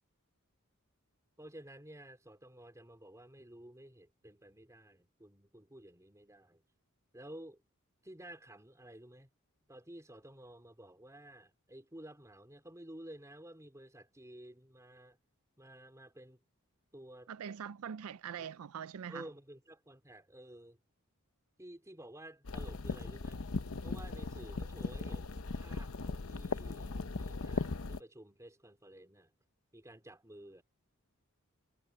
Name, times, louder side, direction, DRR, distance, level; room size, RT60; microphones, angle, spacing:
voice 1, 1.4-6.6 7.1-7.6 8.0-9.3 9.7-15.2 15.6-16.4 16.9-17.3 18.3-18.5 19.1-20.8 21.6-23.4 23.8-29.3 29.7-30.6, right 1 dB, 15° right, 4.0 m, -53 dB
voice 2, 17.3-19.2, right 8 dB, 80° right, 0.4 m, -43 dB
sound 1, 22.5-28.0, left 3 dB, 70° left, 0.8 m, -38 dB
head